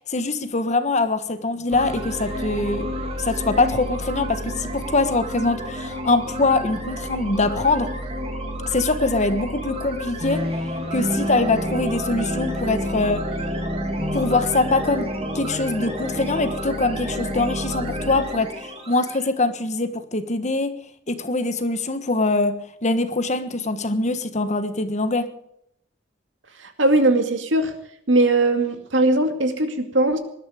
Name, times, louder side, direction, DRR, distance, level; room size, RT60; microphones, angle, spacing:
voice 1, 0.1-2.9 3.2-7.9 8.7-10.4 10.9-13.3 14.1-20.8 21.1-25.3, left 3 dB, 40° left, 1.3 m, -23 dB
sound 1, 1.7-19.3, equal, 35° right, 3.0 m, -29 dB
voice 2, 26.6-27.7 28.1-30.2, right 2 dB, 75° right, 2.3 m, -19 dB
19.5 x 12.5 x 5.1 m
head